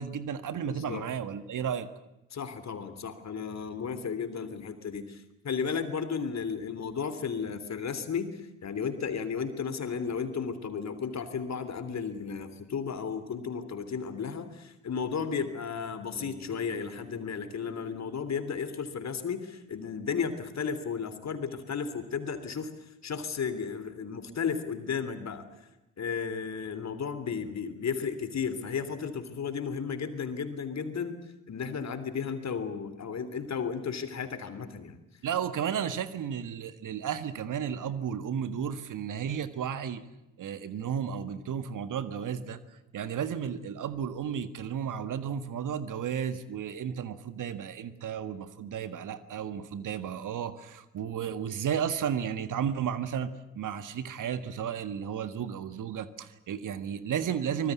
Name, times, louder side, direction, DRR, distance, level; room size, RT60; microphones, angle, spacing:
voice 1, 0.0-1.9 35.2-40.0 40.4-57.7, right 8 dB, 55° right, 12 dB, 1.7 m, -33 dB
voice 2, 0.7-1.0 2.3-22.7 23.0-25.4 26.0-31.2 31.5-35.0, left 6 dB, 45° left, 11 dB, 3.3 m, -34 dB
Bass guitar, 16.1-20.1, equal, 30° right, 4.7 m, -52 dB
25.0 x 20.0 x 8.4 m, 0.95 s
hypercardioid pair, 50°, 37 cm